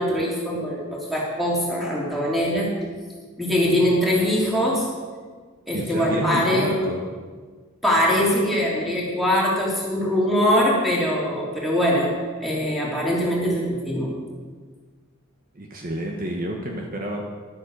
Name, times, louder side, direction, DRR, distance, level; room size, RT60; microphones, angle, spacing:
voice 1, 0.0-2.7 3.4-4.9 5.7-6.7 7.8-12.1 12.4-14.1, equal, ahead, -6 dB, 3.1 m, -22 dB
voice 2, 5.7-7.0 15.5-17.3, right 1 dB, 40° right, 1 dB, 1.1 m, -29 dB
11.5 x 8.8 x 6.5 m, 1.5 s
head